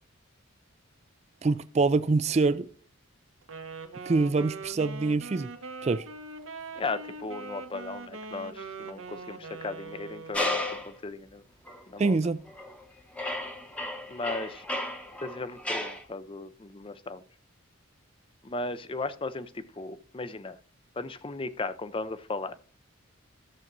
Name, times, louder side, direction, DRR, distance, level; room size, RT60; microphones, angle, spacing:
voice 1, 1.4-2.7 4.1-5.5 5.8-6.0 12.0-12.4, right 3 dB, 30° right, 0.3 m, -25 dB
Wind instrument woodwind instrument, 3.4-10.7, right 3 dB, 80° right, 1.0 m, -42 dB
voice 2, 6.8-11.4 11.9-12.2 14.1-14.6 15.2-17.2 18.4-20.6 21.0-22.5, left 3 dB, 25° left, 0.5 m, -36 dB
sound 1, 10.3-10.9 11.7-11.8 12.5-12.8 13.1-16.0, left 1 dB, 5° left, 0.9 m, -33 dB
13.5 x 7.2 x 2.6 m
head